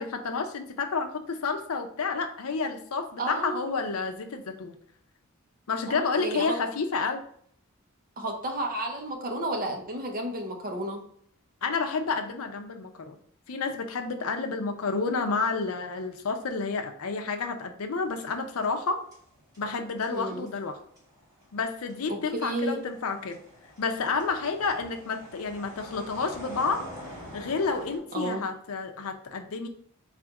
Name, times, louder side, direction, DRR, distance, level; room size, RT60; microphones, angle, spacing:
voice 1, 0.0-4.7 5.7-7.2 11.6-13.2 13.5-19.0 19.6-20.8 21.5-23.4 23.8-26.9 27.3-29.7, left 4 dB, 80° left, 5 dB, 0.6 m, -30 dB
voice 2, 3.2-3.7 5.9-6.5 8.2-11.0 20.1-20.5 22.1-22.8 28.1-28.4, right 1 dB, 40° right, 2 dB, 0.8 m, -32 dB
sound 1, 18.0-18.9 19.1-28.0, left 1 dB, 15° right, 1.9 m, -46 dB
4.2 x 2.5 x 4.6 m, 0.63 s
head